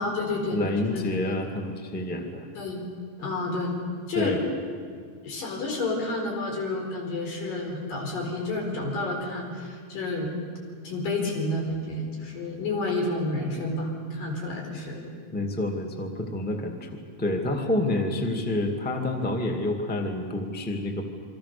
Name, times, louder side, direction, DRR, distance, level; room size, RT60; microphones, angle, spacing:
voice 1, 0.0-1.0 2.6-2.8 3.2-3.8 4.1-4.4 5.2-10.3 10.8-15.0 18.0-18.1, left 2 dB, 75° left, 1 dB, 6.0 m, -30 dB
voice 2, 0.5-2.5 4.1-4.4 15.3-16.9 17.2-21.0, left 1 dB, 5° left, 3 dB, 1.4 m, -28 dB
28.0 x 24.5 x 6.8 m, 2.1 s
omnidirectional pair, 3.9 m